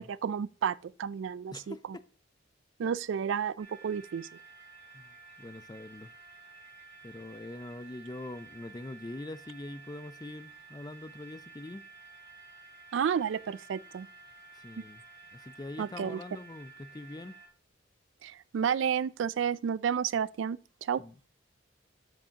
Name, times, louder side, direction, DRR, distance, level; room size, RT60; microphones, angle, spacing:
voice 1, 0.0-2.0 2.8-4.3 12.9-14.1 15.8-16.2 18.2-21.0, right 7 dB, 70° right, 0.3 m, -31 dB
voice 2, 1.5-2.0 4.9-6.1 7.0-11.8 14.5-15.0 15.3-17.3 21.0-21.1, left 2 dB, 20° left, 0.4 m, -43 dB
sound 1, 3.6-17.5, right 4 dB, 30° right, 3.9 m, -52 dB
12.0 x 7.8 x 2.8 m
head